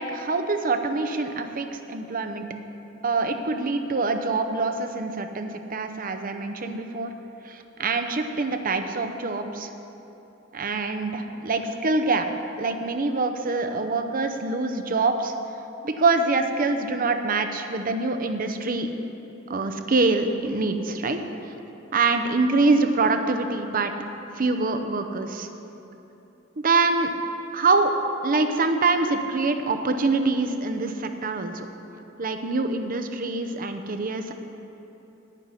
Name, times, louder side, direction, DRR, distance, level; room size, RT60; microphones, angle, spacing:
voice 1, 0.0-2.4 3.0-7.1 7.4-9.7 10.5-12.3 12.6-15.3 15.8-18.9 19.5-21.2 21.9-23.9 24.4-25.5 26.6-27.1 27.5-27.9 28.2-31.7 32.2-34.3, right 3 dB, 45° right, 7 dB, 0.7 m, -25 dB
9.6 x 9.1 x 5.6 m, 3.0 s
head